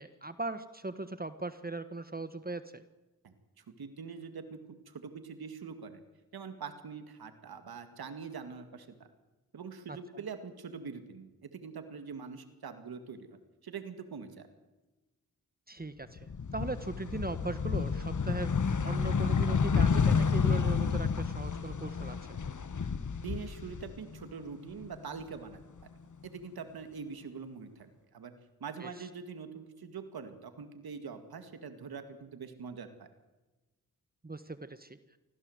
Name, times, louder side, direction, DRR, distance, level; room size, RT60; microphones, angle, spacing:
voice 1, 0.0-2.8 9.9-10.0 15.7-18.6 18.8-22.4 28.8-29.1 34.2-35.0, right 2 dB, 25° right, 11 dB, 1.5 m, -39 dB
voice 2, 3.2-4.6 4.9-6.0 6.3-9.1 9.5-14.5 23.2-25.6 26.2-28.3 28.6-33.1, right 5 dB, 90° right, 8 dB, 2.2 m, -44 dB
sound 1, 16.2-24.3 24.7-25.8, left 5 dB, 55° left, 1.5 m, -30 dB
24.5 x 16.5 x 8.0 m, 1.1 s
cardioid pair, 45°, 36 cm